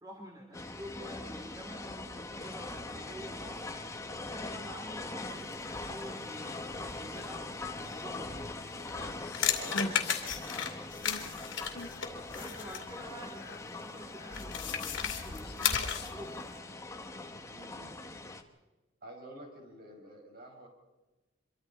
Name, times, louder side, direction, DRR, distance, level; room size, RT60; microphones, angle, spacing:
voice 1, 0.0-3.8 4.2-8.5 12.3-16.5, equal, 20° right, 0 dB, 2.6 m, -48 dB
sound 1, 0.5-18.4, left 2 dB, 15° left, 1.3 m, -42 dB
sound 2, 5.4-16.6, left 1 dB, 55° left, 2.2 m, -46 dB
sound 3, 8.9-12.9 14.3-16.2, left 8 dB, 75° left, 2.5 m, -34 dB
voice 2, 9.6-9.9 17.5-18.0 19.0-20.7, right 1 dB, 50° right, 1 dB, 5.7 m, -49 dB
25.5 x 23.0 x 4.4 m, 1.1 s
head